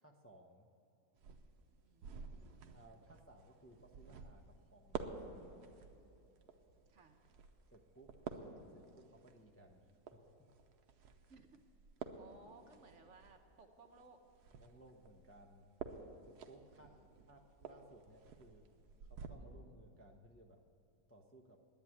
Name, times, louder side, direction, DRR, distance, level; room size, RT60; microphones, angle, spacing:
voice 1, 0.0-0.7 2.7-5.7 7.7-10.5 14.5-15.7 16.3-16.9 17.3-18.6 19.0-20.6 21.1-21.6, right 1 dB, 15° left, 1 dB, 0.6 m, -62 dB
sound 1, 1.1-19.3, right 5 dB, 90° right, 1.4 m, -52 dB
voice 2, 1.8-2.6 6.9-7.2 11.3-11.5 12.2-14.2 16.7-17.3, right 3 dB, 55° right, 5 dB, 1.1 m, -62 dB
10.5 x 9.3 x 9.6 m, 2.9 s
omnidirectional pair, 1.7 m